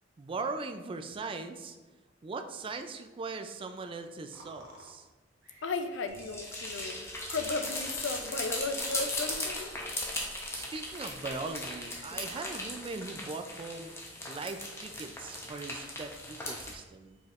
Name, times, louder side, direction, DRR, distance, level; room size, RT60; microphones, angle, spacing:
voice 1, 0.2-1.8 2.2-5.1 10.5-13.9 14.3-17.2, right 3 dB, 30° right, 8 dB, 0.3 m, -40 dB
sound 1, 3.8-10.1, right 2 dB, 75° right, 1.0 m, -56 dB
voice 2, 5.6-9.8, left 3 dB, 75° left, 7 dB, 0.5 m, -35 dB
sound 2, 6.1-16.7, left 1 dB, 15° left, 0.7 m, -38 dB
4.9 x 4.2 x 2.4 m, 1.2 s
head